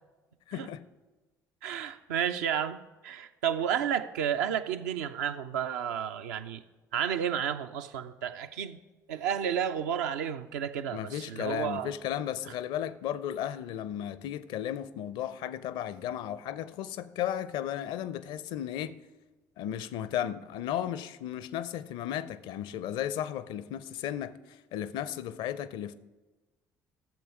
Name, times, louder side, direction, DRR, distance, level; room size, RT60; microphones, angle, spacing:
voice 1, 0.5-0.8 10.9-19.0 19.6-25.9, left 10 dB, 60° left, 0.5 m, -35 dB
voice 2, 1.6-6.6 6.9-8.8 9.1-11.9, right 8 dB, 70° right, 0.5 m, -31 dB
14.5 x 7.3 x 4.7 m
figure-of-eight pair, 50°, 9 cm